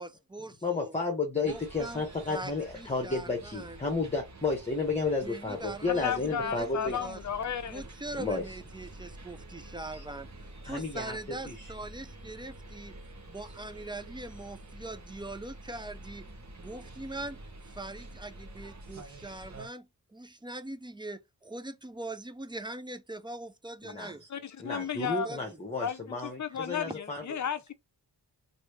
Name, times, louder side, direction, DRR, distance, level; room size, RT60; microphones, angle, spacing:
voice 1, 0.0-0.9 1.4-2.0 2.3-2.5 2.8-3.8 5.2-7.2 7.7-10.3 10.6-12.9 13.3-16.3 16.6-17.4 17.7-24.2 25.0-25.4, right 2 dB, 15° right, 0.3 m, -42 dB
voice 2, 0.6-7.0 8.2-8.5 9.9-10.0 10.6-11.7 23.8-24.3 24.6-27.3, left 3 dB, 15° left, 1.0 m, -32 dB
sound 1, 1.4-19.7, right 1 dB, 40° right, 1.0 m, -48 dB
voice 3, 6.0-7.8 24.3-25.3 25.8-27.7, left 8 dB, 45° left, 0.6 m, -34 dB
3.1 x 2.7 x 3.0 m
wide cardioid pair, 110°, 41 cm